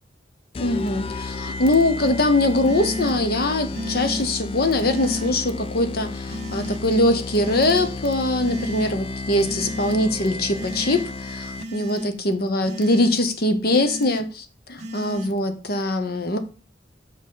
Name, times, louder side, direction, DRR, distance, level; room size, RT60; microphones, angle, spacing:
sound 1, 0.5-11.9, left 3 dB, 30° left, 0.3 m, -33 dB
voice 1, 0.6-16.4, left 1 dB, 60° left, 0.9 m, -22 dB
sound 2, 2.0-2.1 2.6-3.2 3.7-4.3 4.8-5.3 6.3-6.8 7.4-7.9 8.4-8.9 9.4-10.0 10.5-11.1 11.6-12.1 12.6-13.2 13.7-14.2 14.8-15.3, equal, 40° right, 1.1 m, -33 dB
6.5 x 3.9 x 5.6 m
head